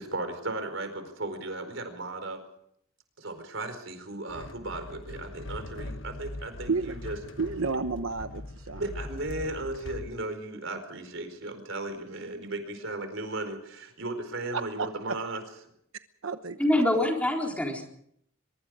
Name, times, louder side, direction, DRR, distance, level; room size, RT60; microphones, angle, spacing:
voice 1, 0.0-2.4 3.2-7.2 8.7-15.4, right 2 dB, 70° right, 8 dB, 4.6 m, -36 dB
sound 1, 4.3-10.1, left 1 dB, 65° left, 1.5 m, -41 dB
voice 2, 7.4-8.8 14.5-14.9 16.2-16.6 16.9-17.1, right 4 dB, 90° right, 9 dB, 1.1 m, -31 dB
voice 3, 16.6-17.8, left 1 dB, 5° left, 1 dB, 4.0 m, -25 dB
23.5 x 23.0 x 5.0 m, 0.69 s
head